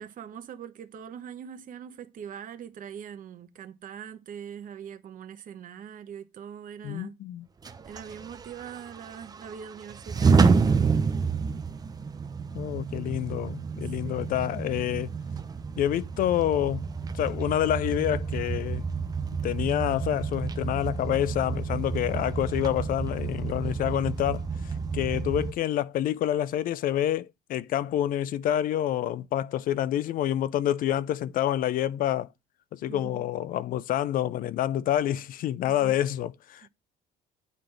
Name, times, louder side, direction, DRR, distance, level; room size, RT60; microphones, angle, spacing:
voice 1, 0.0-7.2 7.8-10.7 14.0-14.4 32.8-33.2 35.7-36.0, right 8 dB, 55° right, 0.9 m, -42 dB
voice 2, 6.8-7.5 12.5-15.1 15.8-16.8 17.1-18.8 19.4-24.5 24.9-32.3 32.7-36.7, left 12 dB, 55° left, 0.4 m, -27 dB
sound 1, 7.6-25.5, right 5 dB, 20° right, 0.6 m, -29 dB
8.7 x 3.9 x 3.3 m
cardioid pair, 110°, 17 cm